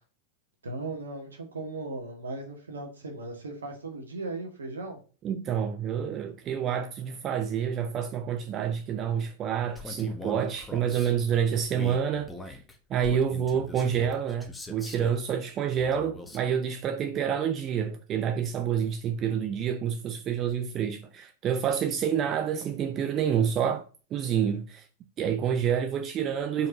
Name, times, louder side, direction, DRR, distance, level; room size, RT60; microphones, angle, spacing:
voice 1, 0.6-5.0, right 2 dB, 70° right, 2.0 m, -37 dB
voice 2, 5.2-12.6 12.9-23.8 24.1-24.9 25.2-26.7, right 8 dB, 30° right, 0.6 m, -28 dB
Male speech man speaking, 9.7-11.1 11.7-15.2 15.8-16.5, left 2 dB, 10° left, 1.2 m, -42 dB
5.2 x 4.5 x 5.6 m
figure-of-eight pair, 90°, 0 cm